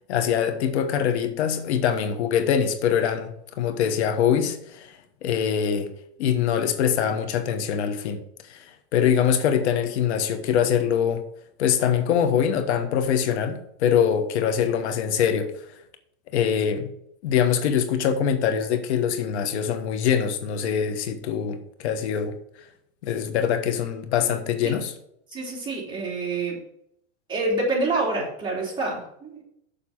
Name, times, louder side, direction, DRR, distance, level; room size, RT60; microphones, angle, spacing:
voice 1, 0.1-5.9 6.2-11.2 11.6-15.5 16.3-16.9 17.2-22.3 23.0-24.9, left 8 dB, 80° left, 1.3 m, -23 dB
voice 2, 25.3-26.6 27.3-29.4, right 2 dB, 15° right, 3.4 m, -27 dB
6.9 x 5.6 x 7.2 m
supercardioid pair, 145°, 33 cm